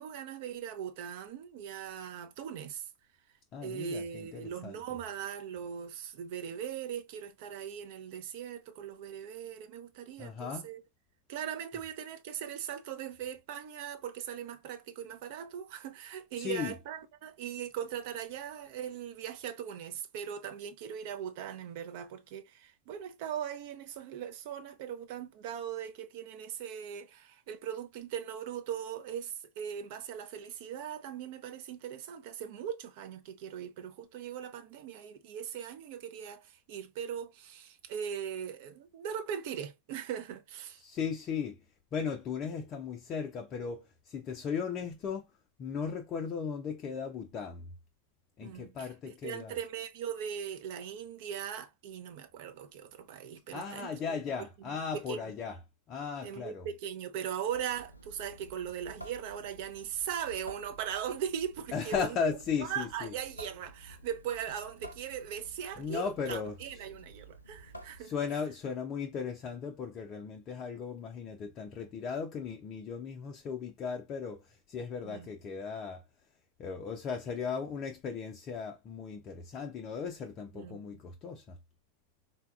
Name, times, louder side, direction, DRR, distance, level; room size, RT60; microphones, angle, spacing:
voice 1, 0.0-2.9 3.6-10.8 11.3-40.8 48.4-54.0 54.9-55.2 56.2-62.3 62.6-68.1 75.0-75.3 80.5-81.0, right 9 dB, 50° right, 0.6 m, -39 dB
voice 2, 3.5-4.8 10.2-10.7 16.4-16.7 40.8-41.6 41.9-45.3 45.6-47.7 48.4-49.5 53.5-55.6 55.9-56.7 61.7-63.1 65.8-66.6 68.0-76.0 76.6-81.6, left 6 dB, 30° left, 0.5 m, -37 dB
Water tap faucet / Sink (filling or washing) / Drip, 57.5-68.4, right 1 dB, 85° left, 0.4 m, -51 dB
3.9 x 2.3 x 2.3 m
figure-of-eight pair, 90°, 0 cm